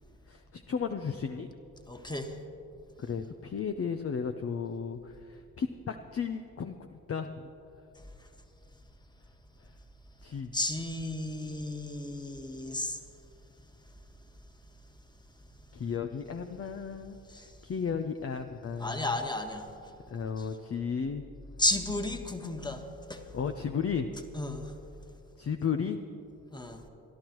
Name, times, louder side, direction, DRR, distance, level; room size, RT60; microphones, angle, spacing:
voice 1, 0.3-1.5 3.0-7.3 10.2-10.5 15.7-19.1 20.1-21.2 23.3-24.1 25.4-26.0, left 6 dB, 35° left, 6 dB, 0.7 m, -34 dB
voice 2, 1.9-2.3 10.5-13.0 17.3-17.5 18.8-19.7 20.4-20.5 21.6-22.8 23.1-23.2 24.3-24.7 26.5-26.8, left 2 dB, 10° left, 4 dB, 1.6 m, -33 dB
26.5 x 11.5 x 3.1 m, 2.8 s
hypercardioid pair, 50°, 43 cm